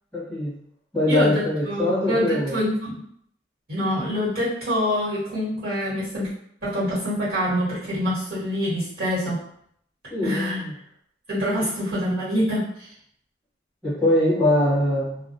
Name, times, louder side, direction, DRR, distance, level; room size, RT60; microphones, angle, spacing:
voice 1, 0.1-0.5 0.9-2.6 10.1-10.7 11.6-11.7 13.8-15.3, left 1 dB, 5° left, -11 dB, 1.0 m, -22 dB
voice 2, 1.1-3.0 3.7-6.3 6.6-9.4 10.2-10.6 11.3-12.9, equal, 55° right, -9 dB, 1.4 m, -25 dB
2.3 x 2.0 x 2.7 m, 0.68 s
head